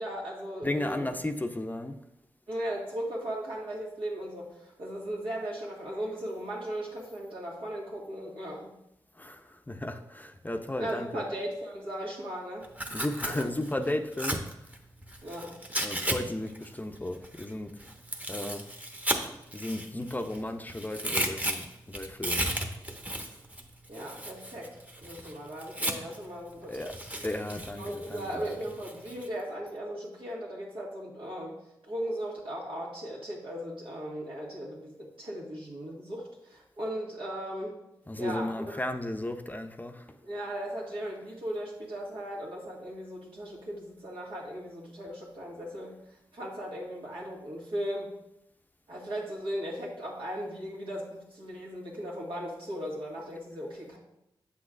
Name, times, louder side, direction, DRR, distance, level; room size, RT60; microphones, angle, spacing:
voice 1, 0.0-1.1 2.5-8.7 10.8-12.7 13.2-13.5 15.2-15.5 23.9-24.7 25.0-26.9 27.8-31.6 31.8-37.8 38.2-38.8 40.2-45.9 46.3-48.1 48.9-54.0, equal, 85° right, -5 dB, 1.8 m, -37 dB
voice 2, 0.6-2.0 9.2-11.2 12.9-14.4 15.8-17.7 18.3-18.7 19.5-22.5 26.7-26.9 27.2-28.6 38.1-40.1, left 1 dB, 20° left, 7 dB, 0.6 m, -34 dB
Tearing, 12.6-16.2 16.5-20.4 20.7-26.2 26.7-29.3, right 1 dB, 15° right, 0.9 m, -35 dB
7.6 x 6.1 x 2.5 m, 0.84 s
cardioid pair, 50°, 9 cm